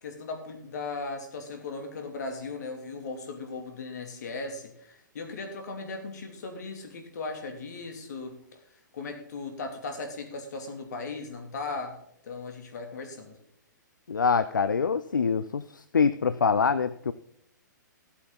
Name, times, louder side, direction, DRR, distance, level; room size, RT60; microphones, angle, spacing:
voice 1, 0.0-8.4 8.9-11.9 12.2-13.3, left 3 dB, 60° left, 5 dB, 3.0 m, -37 dB
voice 2, 14.1-15.6 15.9-17.1, left 5 dB, 80° left, 14 dB, 0.6 m, -24 dB
15.0 x 8.5 x 4.0 m, 0.71 s
figure-of-eight pair, 120°, 10 cm